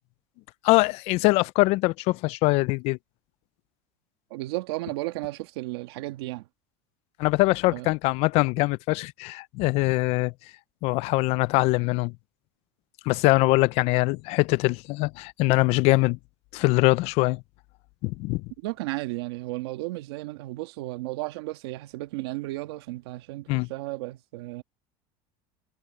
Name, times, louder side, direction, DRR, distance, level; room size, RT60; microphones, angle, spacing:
voice 1, 0.6-3.0 7.2-10.3 10.8-12.1 13.1-16.2 16.5-17.4 18.0-18.4 23.5-23.7, left 22 dB, 55° left, 0.4 m, -23 dB
voice 2, 4.3-6.4 7.7-7.9 18.6-24.6, right 19 dB, 90° right, 1.5 m, -34 dB
cardioid pair, 150°, 13 cm